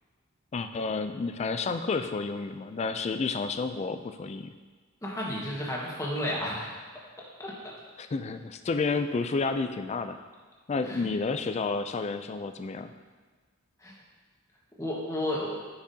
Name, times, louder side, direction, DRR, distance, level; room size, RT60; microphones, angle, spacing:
voice 1, 0.5-4.5 8.0-10.2 10.7-12.9, left 4 dB, 30° left, 9 dB, 0.3 m, -30 dB
voice 2, 5.0-6.7 7.2-7.7 10.8-11.1 13.8-13.9 14.8-15.6, left 1 dB, 15° left, -4 dB, 1.4 m, -33 dB
10.0 x 6.0 x 2.8 m, 1.5 s
head